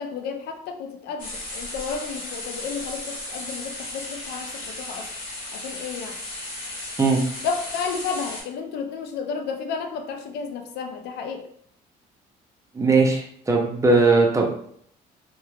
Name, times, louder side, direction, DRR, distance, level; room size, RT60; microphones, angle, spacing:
voice 1, 0.0-5.1 5.5-6.2 7.4-11.5, left 5 dB, 80° left, 6 dB, 0.4 m, -32 dB
sound 1, 1.2-8.4, left 1 dB, 55° left, 1.4 m, -35 dB
voice 2, 12.7-14.5, right 3 dB, 20° right, 0 dB, 0.5 m, -19 dB
3.0 x 2.2 x 2.3 m, 0.64 s
cardioid pair, 110°, 17 cm